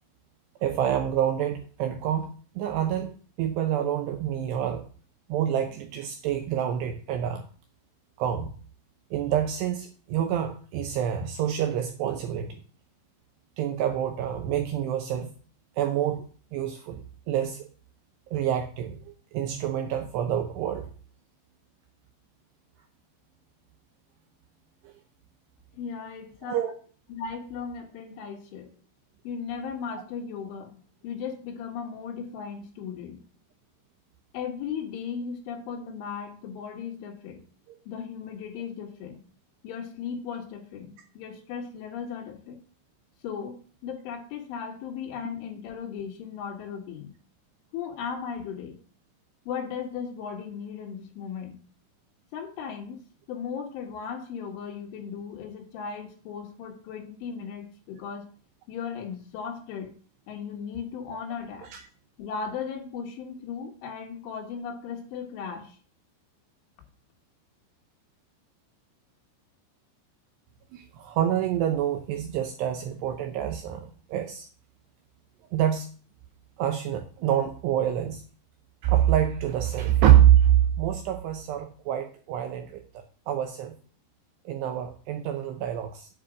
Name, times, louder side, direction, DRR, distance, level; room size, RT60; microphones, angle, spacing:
voice 1, 0.6-4.8 5.3-7.5 8.2-8.5 9.1-12.6 13.6-15.3 15.8-16.3 16.5-17.7 18.3-19.0 19.3-20.9 24.8-24.9 26.4-26.7 61.7-61.8 70.7-74.5 75.5-75.9 76.6-78.2 78.8-82.8 83.3-83.8 84.5-86.1, right 11 dB, 80° right, 5 dB, 2.5 m, -26 dB
voice 2, 25.7-26.6 27.1-28.7 29.2-33.2 34.3-37.4 37.9-39.2 39.6-42.6 43.2-47.2 47.7-48.8 49.5-51.6 52.3-53.0 53.3-58.3 58.7-59.9 60.3-61.7 62.2-65.8, left 6 dB, 80° left, 2 dB, 4.0 m, -36 dB
8.5 x 5.0 x 6.2 m, 0.41 s
omnidirectional pair, 5.6 m